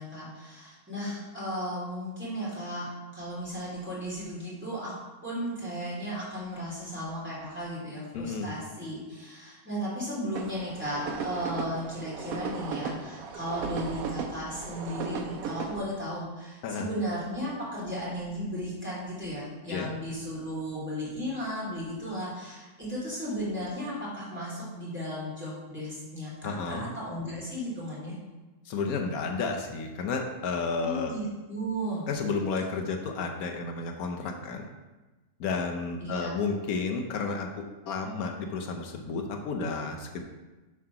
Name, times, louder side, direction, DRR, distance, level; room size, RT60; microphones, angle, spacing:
voice 1, 0.0-2.9 3.1-4.9 5.2-28.2 30.8-32.1 36.0-36.3, equal, 10° right, -8 dB, 2.7 m, -35 dB
voice 2, 8.1-8.5 16.6-16.9 19.7-19.9 26.4-26.9 28.7-31.1 32.1-34.7 35.4-40.2, left 4 dB, 85° left, 3 dB, 1.3 m, -32 dB
sound 1, 10.4-15.8, right 5 dB, 80° right, 1.2 m, -36 dB
7.5 x 3.9 x 5.8 m, 1.2 s
omnidirectional pair, 1.5 m